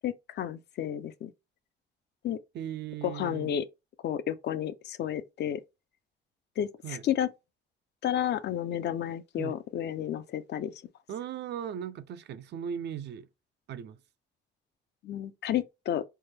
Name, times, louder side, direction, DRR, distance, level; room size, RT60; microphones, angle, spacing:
voice 1, 0.0-1.3 2.2-2.4 3.0-3.6 4.0-5.6 6.6-7.3 8.0-10.7 15.0-16.0, left 10 dB, 60° left, 0.4 m, -31 dB
voice 2, 2.5-3.5 6.8-7.0 9.4-9.6 11.1-13.3 13.7-14.0, right 9 dB, 60° right, 0.4 m, -37 dB
3.3 x 2.1 x 3.3 m
cardioid pair, 90°, 20 cm